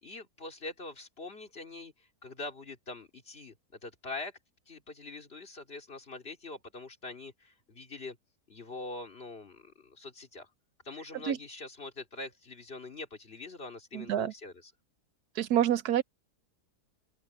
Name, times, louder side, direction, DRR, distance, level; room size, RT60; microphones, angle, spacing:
voice 1, 0.0-3.5 3.8-4.4 4.7-8.2 8.5-10.5 10.8-14.7, left 2 dB, 40° left, 3.1 m, -44 dB
voice 2, 13.9-14.3 15.4-16.0, right 10 dB, 75° right, 1.3 m, -27 dB
open air
omnidirectional pair, 1.7 m